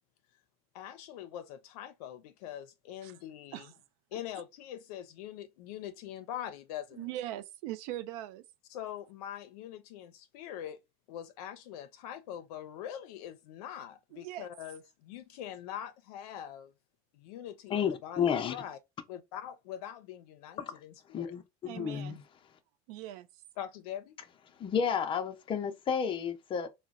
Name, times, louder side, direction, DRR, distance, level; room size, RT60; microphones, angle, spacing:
voice 1, 0.7-3.7 4.1-7.1 8.7-10.8 11.1-16.7 17.1-18.8 19.1-21.4 21.9-22.0 23.6-24.2, left 10 dB, 90° left, 0.5 m, -43 dB
voice 2, 7.0-8.4 14.1-14.5 21.7-22.2 22.9-23.3, right 14 dB, 80° right, 0.4 m, -40 dB
voice 3, 17.7-18.5 20.6-20.8 21.1-22.2 24.6-26.7, left 7 dB, 25° left, 0.5 m, -31 dB
3.8 x 2.1 x 2.4 m
supercardioid pair, 140°, 19 cm